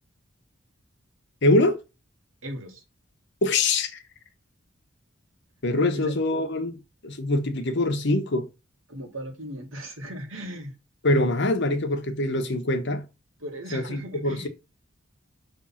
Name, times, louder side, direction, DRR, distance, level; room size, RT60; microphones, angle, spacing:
voice 1, 1.4-1.8 3.4-4.0 5.6-8.5 11.0-13.1 13.7-14.5, left 2 dB, 60° left, 1.1 m, -24 dB
voice 2, 2.4-2.8 5.9-6.1 8.9-10.8 13.4-14.5, equal, 75° right, 1.7 m, -37 dB
6.3 x 3.4 x 5.6 m
head